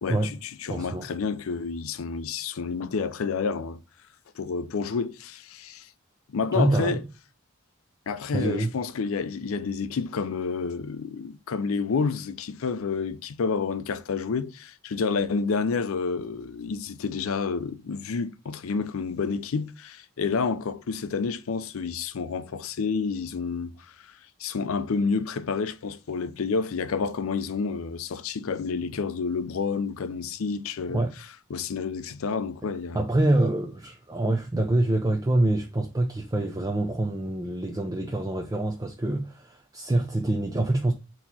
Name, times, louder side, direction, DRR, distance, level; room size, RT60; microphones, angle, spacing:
voice 1, 0.0-3.8 4.4-5.9 6.3-7.0 8.1-23.7 24.4-31.0 31.5-33.0, left 5 dB, 80° left, 0.5 m, -29 dB
voice 2, 0.7-1.1 6.5-7.0 8.3-8.7 30.9-31.1 32.9-40.9, right 2 dB, 15° right, 0.4 m, -25 dB
4.4 x 2.9 x 4.1 m
head